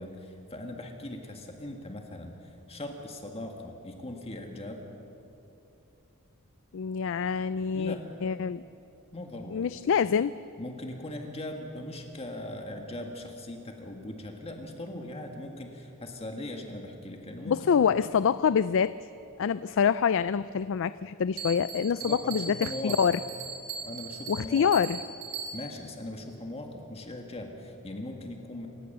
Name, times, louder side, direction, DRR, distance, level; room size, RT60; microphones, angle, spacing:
voice 1, 0.0-4.8 7.7-8.1 9.1-9.7 10.6-17.8 22.0-23.0 23.8-24.7 25.5-28.7, left 1 dB, 30° left, 3 dB, 1.8 m, -40 dB
voice 2, 6.7-8.6 9.5-10.3 17.5-18.9 19.4-23.2 24.3-25.0, left 7 dB, 60° left, 15 dB, 0.4 m, -26 dB
Bell, 21.4-25.9, right 5 dB, 80° right, 3.4 m, -39 dB
28.0 x 16.5 x 6.8 m, 3.0 s
head